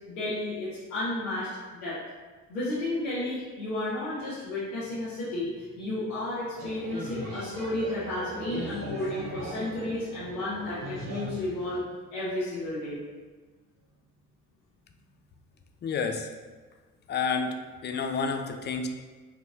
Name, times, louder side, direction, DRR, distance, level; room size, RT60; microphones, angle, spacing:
voice 1, 0.1-1.5 1.8-2.0 2.5-11.8 12.1-13.0, left 2 dB, 90° left, -11 dB, 0.8 m, -32 dB
sound 1, 6.6-11.8, right 1 dB, 80° right, 0.9 m, -39 dB
voice 2, 15.8-16.3 17.1-18.9, left 5 dB, 25° left, 6 dB, 0.4 m, -30 dB
4.5 x 2.9 x 2.4 m, 1.4 s
hypercardioid pair, 45°, 44 cm